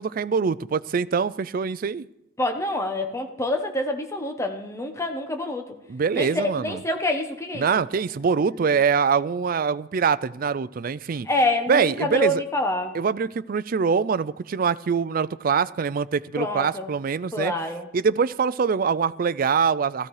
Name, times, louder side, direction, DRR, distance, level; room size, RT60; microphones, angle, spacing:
voice 1, 0.0-2.1 5.9-6.8 7.5-11.3 11.7-12.4 12.9-17.5 17.9-20.1, right 6 dB, 50° right, 0.4 m, -24 dB
voice 2, 2.4-5.6 6.1-7.7 11.3-13.0 16.4-16.9 17.3-17.9, left 1 dB, 15° left, 1.1 m, -26 dB
15.0 x 14.5 x 4.8 m
head